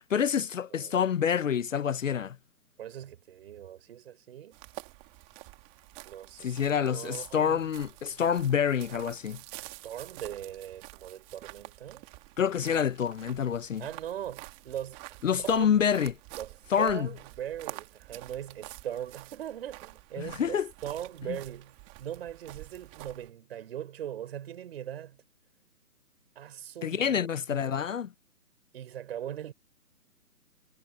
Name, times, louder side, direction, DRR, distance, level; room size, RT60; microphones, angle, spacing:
voice 1, 0.0-2.4 6.4-9.4 12.4-13.8 15.2-16.1 16.7-17.1 20.2-20.7 26.8-28.1, left 8 dB, 55° left, 0.7 m, -27 dB
voice 2, 2.8-4.6 6.0-7.7 9.6-12.1 13.8-15.8 16.3-25.2 26.4-27.8 28.7-29.5, right 10 dB, 40° right, 5.3 m, -40 dB
sound 1, 4.5-23.3, right 26 dB, 20° right, 2.6 m, -48 dB
hypercardioid pair, 155°, 46 cm